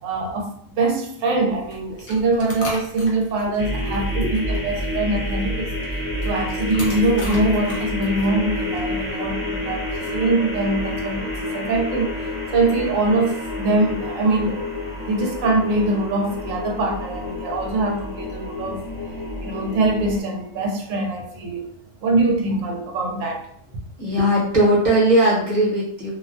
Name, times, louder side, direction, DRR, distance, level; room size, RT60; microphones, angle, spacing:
voice 1, 0.0-5.7 6.2-12.2 12.5-14.6 15.0-18.9 19.4-21.7 22.0-23.4, right 2 dB, 75° right, 2 dB, 0.9 m, -23 dB
sound 1, 1.5-9.4, left 1 dB, 65° left, 1.0 m, -38 dB
sound 2, 3.6-20.2, left 1 dB, 15° left, 0.5 m, -28 dB
voice 2, 3.8-4.3 24.0-26.1, right 1 dB, 40° right, -5 dB, 0.9 m, -19 dB
2.5 x 2.2 x 2.4 m, 0.66 s
omnidirectional pair, 1.4 m